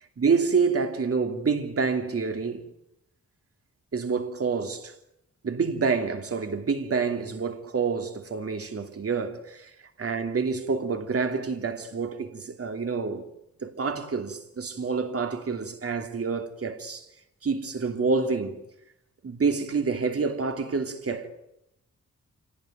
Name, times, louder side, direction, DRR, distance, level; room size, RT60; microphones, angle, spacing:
voice 1, 0.2-2.7 3.9-4.9 5.4-9.7 10.0-13.2 13.6-17.1 17.4-18.6 19.2-21.3, right 5 dB, 50° right, 2.9 m, -27 dB
26.0 x 18.5 x 9.3 m
wide cardioid pair, 115°, 29 cm